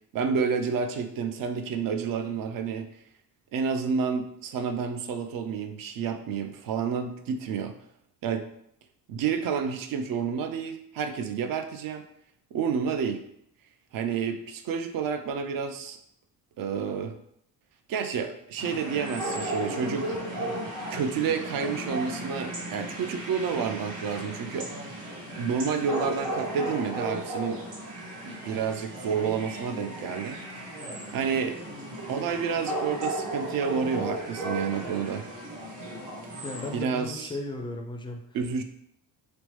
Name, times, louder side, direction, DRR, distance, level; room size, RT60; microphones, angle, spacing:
voice 1, 0.1-2.9 3.5-7.7 8.2-8.5 9.1-12.0 12.5-13.2 13.9-16.0 16.6-17.1 17.9-20.2 20.9-24.7 25.4-27.6 28.3-30.9 31.1-31.6 32.1-35.3 36.7-37.3 38.3-38.6, right 6 dB, 55° right, 7 dB, 0.5 m, -30 dB
sound 1, 18.6-36.8, right 1 dB, 85° right, 1.1 m, -35 dB
voice 2, 36.4-38.2, left 2 dB, 15° left, 4 dB, 0.3 m, -36 dB
3.0 x 2.0 x 3.0 m, 0.73 s
supercardioid pair, 70°, 43 cm